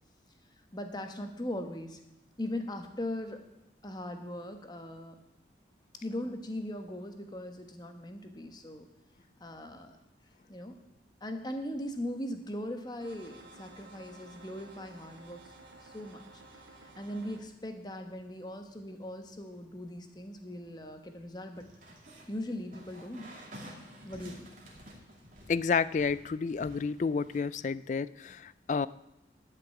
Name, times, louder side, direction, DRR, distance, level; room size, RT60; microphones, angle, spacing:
voice 1, 0.7-2.0 2.4-3.4 3.8-5.1 6.0-8.9 9.4-10.0 10.5-10.7 11.2-15.4 15.8-16.2 16.5-16.6 16.9-21.6 22.3-23.3 24.0-24.5, left 1 dB, 20° left, 6 dB, 1.1 m, -39 dB
sound 1, 13.0-17.4, right 2 dB, 75° right, 1.9 m, -53 dB
sound 2, 21.5-27.4, right 1 dB, 45° right, 2.4 m, -51 dB
voice 2, 25.5-28.9, left 5 dB, 40° left, 17 dB, 0.3 m, -30 dB
11.5 x 6.0 x 8.4 m, 0.88 s
head